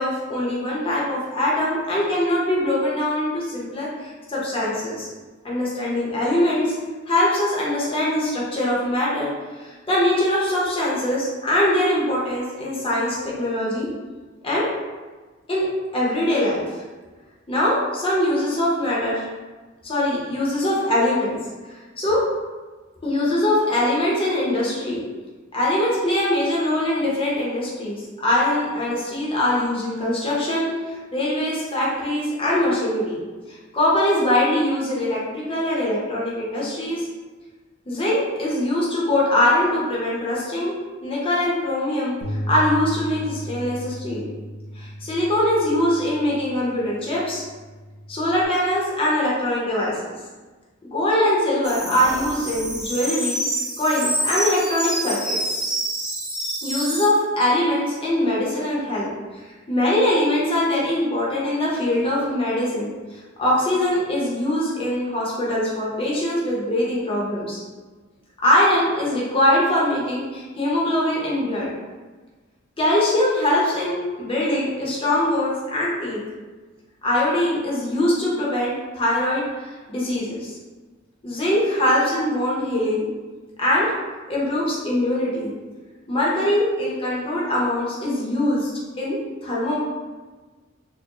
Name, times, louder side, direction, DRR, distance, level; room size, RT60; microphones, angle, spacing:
voice 1, 0.0-5.1 5.4-6.7 7.1-9.3 9.6-13.9 14.4-14.7 15.5-15.7 15.9-16.6 17.5-19.3 19.8-21.4 22.0-22.2 23.0-25.0 25.5-33.2 33.5-37.1 37.9-40.8 41.0-44.2 44.7-47.4 48.1-50.0 50.8-53.4 53.8-55.6 56.6-59.4 59.7-67.6 68.4-71.7 72.8-76.2 77.0-80.6 81.2-83.0 83.6-83.9 84.3-85.5 86.1-88.7 89.0-89.8, left 1 dB, 25° left, -6 dB, 0.7 m, -22 dB
Bass guitar, 42.2-48.5, equal, 70° left, 0.6 m, -35 dB
sound 1, 51.6-57.1, right 1 dB, 5° right, 0.4 m, -27 dB
4.4 x 2.1 x 2.9 m, 1.3 s
head